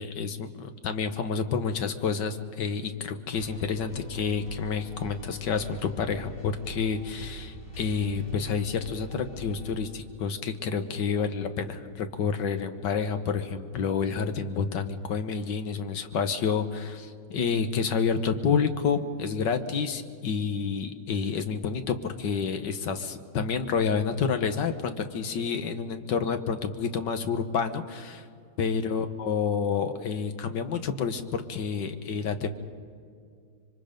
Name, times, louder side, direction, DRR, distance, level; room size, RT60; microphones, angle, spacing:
voice 1, 0.0-28.3 28.6-32.5, left 6 dB, 70° left, 8 dB, 1.7 m, -29 dB
sound 1, 3.3-9.8, right 2 dB, 45° left, 5.9 m, -43 dB
26.0 x 24.0 x 5.2 m, 2.3 s
omnidirectional pair, 2.1 m